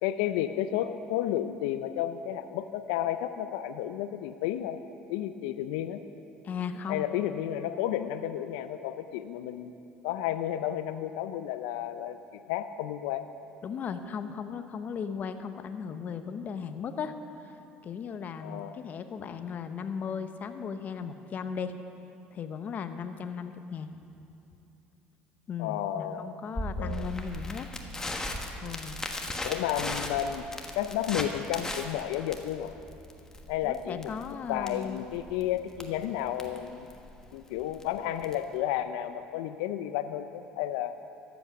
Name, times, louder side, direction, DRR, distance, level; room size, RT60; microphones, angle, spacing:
voice 1, 0.0-4.8 5.1-6.0 6.9-9.7 10.0-12.2 12.5-13.3 18.4-18.8 25.6-26.3 26.8-27.1 29.4-30.4 30.7-32.7 33.5-34.1 34.5-36.9 37.3-40.9, left 11 dB, 85° left, 11 dB, 0.4 m, -32 dB
voice 2, 6.4-7.1 13.6-17.1 17.4-21.7 22.3-23.9 25.5-27.7 28.6-29.1 33.6-35.1, left 6 dB, 45° left, 9 dB, 0.7 m, -37 dB
Crackle, 26.6-38.5, left 1 dB, 15° left, 1.2 m, -38 dB
13.5 x 8.1 x 5.9 m, 2.8 s
supercardioid pair, 85°, 4 cm